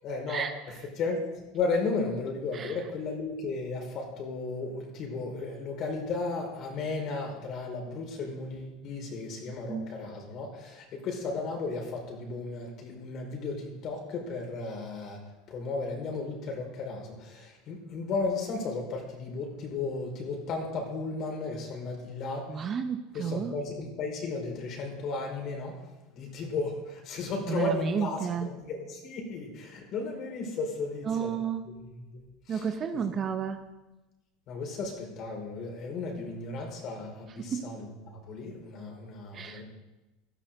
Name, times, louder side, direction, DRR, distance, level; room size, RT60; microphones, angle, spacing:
voice 1, 0.0-15.2 15.5-22.7 23.1-25.8 26.1-31.3 31.6-32.7 33.1-33.3 34.5-39.6, left 3 dB, 50° left, 1 dB, 4.9 m, -35 dB
voice 2, 22.5-23.5 27.5-28.5 31.1-31.6 32.5-33.6 37.4-37.7 39.3-39.6, right 7 dB, 35° right, 8 dB, 1.1 m, -31 dB
17.5 x 12.5 x 3.9 m, 1.0 s
supercardioid pair, 110°, 0 cm